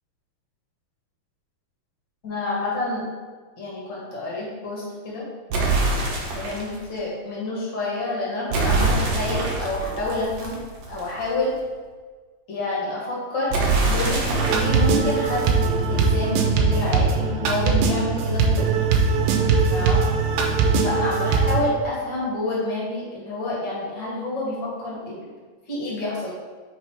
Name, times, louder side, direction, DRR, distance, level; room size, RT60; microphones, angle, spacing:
voice 1, 2.2-3.0 3.6-5.2 6.3-10.6 10.9-11.5 12.5-13.5 13.8-15.6 15.9-18.6 19.7-20.0 20.8-25.3 25.7-26.3, left 2 dB, 45° left, -5 dB, 1.5 m, -28 dB
sound 1, 5.5-6.8 8.5-11.2 13.5-16.2, right 3 dB, 65° right, 1.9 m, -25 dB
sound 2, 14.4-21.6, right 4 dB, 85° right, 2.5 m, -21 dB
5.3 x 4.7 x 4.6 m, 1.4 s
omnidirectional pair, 4.1 m